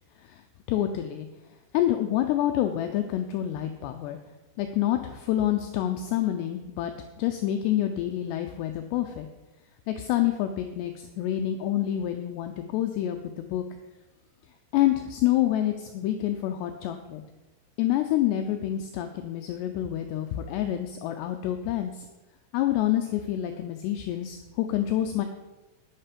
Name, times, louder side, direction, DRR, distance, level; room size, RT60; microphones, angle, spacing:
voice 1, 0.2-1.3 1.7-4.2 4.6-6.9 7.2-9.3 9.9-13.6 14.7-17.2 17.8-22.1 22.5-25.3, left 12 dB, 90° left, 6 dB, 2.4 m, -27 dB
10.0 x 9.9 x 5.2 m, 1.1 s
omnidirectional pair, 5.6 m